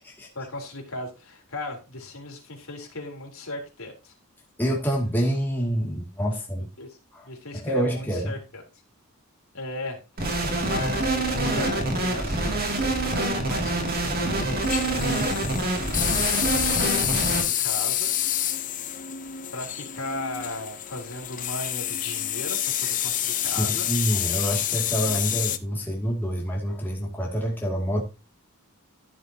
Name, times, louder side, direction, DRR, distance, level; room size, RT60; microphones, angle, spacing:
voice 1, 0.4-4.1 6.8-7.0 7.3-8.6 9.5-12.5 12.8-15.2 16.5-18.1 19.5-23.9, left 2 dB, 70° left, 3.8 m, -37 dB
voice 2, 4.6-6.7 7.1-7.3 7.5-8.3 23.6-28.0, equal, 10° left, 2.4 m, -27 dB
sound 1, 10.2-17.4, right 2 dB, 45° right, 2.7 m, -26 dB
sound 2, 14.6-25.6, left 11 dB, 35° left, 0.7 m, -28 dB
14.0 x 7.7 x 2.9 m
head